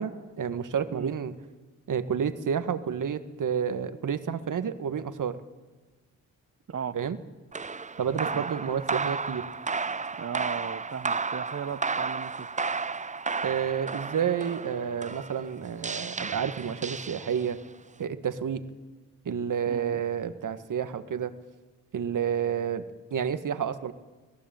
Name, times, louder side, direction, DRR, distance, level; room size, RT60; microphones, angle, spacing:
voice 1, 0.0-1.3 1.9-5.4 6.9-7.2 8.0-9.4 13.4-17.6 18.0-18.6 19.3-21.3 21.9-23.9, right 7 dB, 60° right, 11 dB, 1.8 m, -30 dB
sound 1, 7.5-17.7, right 4 dB, 20° right, 0.7 m, -33 dB
voice 2, 10.2-12.5 19.7-20.0, right 7 dB, 40° right, 15 dB, 1.2 m, -36 dB
26.0 x 17.5 x 9.2 m, 1.3 s
cardioid pair, 65°, 35 cm